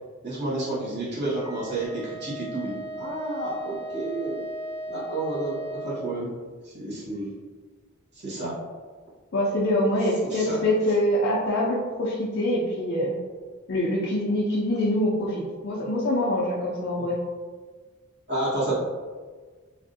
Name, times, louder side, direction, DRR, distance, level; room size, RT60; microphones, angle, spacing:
voice 1, 0.2-4.4 4.9-6.3 6.6-7.3 8.2-8.6 10.2-10.6 18.3-18.8, right 2 dB, 50° right, -8 dB, 1.2 m, -30 dB
Wind instrument woodwind instrument, 1.2-6.1, right 1 dB, 5° right, 0.5 m, -37 dB
voice 2, 9.3-13.1 13.7-17.2, left 1 dB, 55° left, -6 dB, 0.5 m, -24 dB
3.5 x 2.4 x 2.6 m, 1.4 s
head